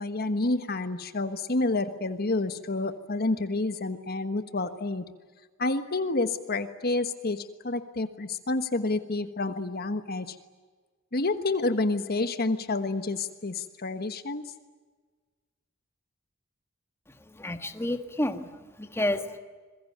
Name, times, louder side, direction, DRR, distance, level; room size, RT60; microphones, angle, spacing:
voice 1, 0.0-5.0 5.6-10.4 11.1-14.5, left 2 dB, 50° left, 10 dB, 1.3 m, -29 dB
voice 2, 17.1-19.4, left 1 dB, 10° left, 7 dB, 1.6 m, -31 dB
27.0 x 22.0 x 9.4 m, 1.4 s
head